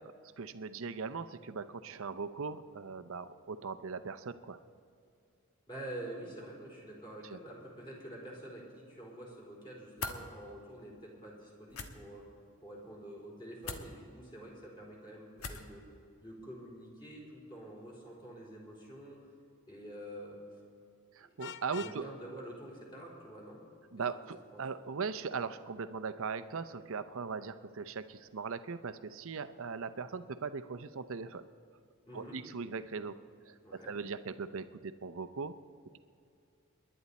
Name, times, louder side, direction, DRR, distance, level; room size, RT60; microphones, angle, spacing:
voice 1, 0.0-4.6 7.3-7.4 21.2-22.0 23.9-31.4 32.1-33.1 33.4-35.5, right 5 dB, 65° right, 12 dB, 0.7 m, -39 dB
voice 2, 5.7-12.2 12.6-15.8 16.2-19.2 19.7-20.4 21.2-21.4 21.7-23.6 24.5-24.6 32.1-32.4 33.6-33.9, right 1 dB, 20° left, -3 dB, 4.1 m, -47 dB
sound 1, 10.0-10.2 11.7-11.9 13.6-13.9 15.4-15.7, left 4 dB, 85° left, 1.3 m, -39 dB
Vehicle horn car horn honking, 21.4-22.0, left 8 dB, 55° left, 0.5 m, -45 dB
28.5 x 11.0 x 4.2 m, 2.5 s
head